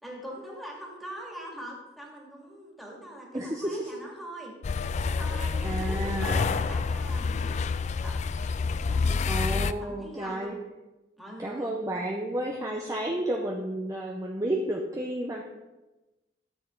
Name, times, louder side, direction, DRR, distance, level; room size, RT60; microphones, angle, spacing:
voice 1, 0.0-4.6 5.2-7.6 8.0-8.1 8.7-10.6 11.2-11.7 12.6-12.7, equal, ahead, -2 dB, 2.2 m, -42 dB
voice 2, 3.3-3.9 5.6-6.4 9.3-10.5 11.4-15.4, right 1 dB, 20° right, -1 dB, 0.7 m, -31 dB
sound 1, 4.6-9.7, left 4 dB, 40° left, 0.3 m, -28 dB
13.0 x 6.7 x 3.8 m, 1.1 s
head